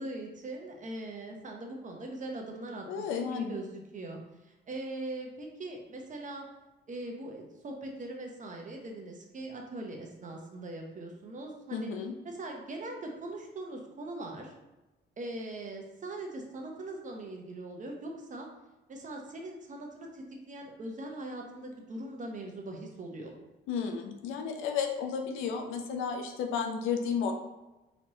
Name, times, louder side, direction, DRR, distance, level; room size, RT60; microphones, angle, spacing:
voice 1, 0.0-4.2 4.7-6.5 6.9-11.9 12.2-14.5 15.2-18.5 18.9-23.3, right 2 dB, 40° right, 1 dB, 0.8 m, -41 dB
voice 2, 2.9-3.5 11.7-12.1 23.7-27.3, left 6 dB, 90° left, 4 dB, 0.6 m, -32 dB
4.1 x 3.1 x 2.8 m, 1.1 s
cardioid pair, 90°, 20 cm